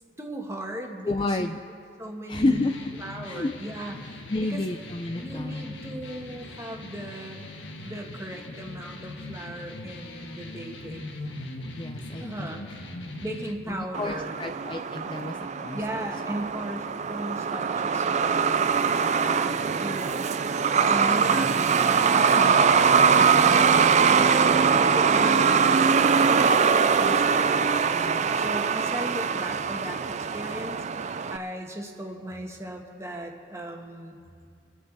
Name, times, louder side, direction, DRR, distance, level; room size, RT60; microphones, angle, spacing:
voice 1, 0.2-1.5 2.0-2.7 3.0-4.6 5.2-7.5 7.8-11.1 12.1-12.6 13.2-14.4 15.7-19.6 19.8-20.2 20.8-26.0 26.3-34.2, right 1 dB, 15° right, 1 dB, 1.5 m, -37 dB
voice 2, 1.0-1.6 2.3-2.7 3.3-3.5 4.3-5.7 11.8-12.6 13.7-16.0, left 2 dB, 25° left, 6 dB, 0.5 m, -30 dB
sound 1, 2.4-13.5, left 2 dB, 75° left, 1.5 m, -40 dB
Truck, 13.9-31.4, right 6 dB, 40° right, 0.4 m, -22 dB
28.0 x 9.5 x 4.1 m, 2.2 s
head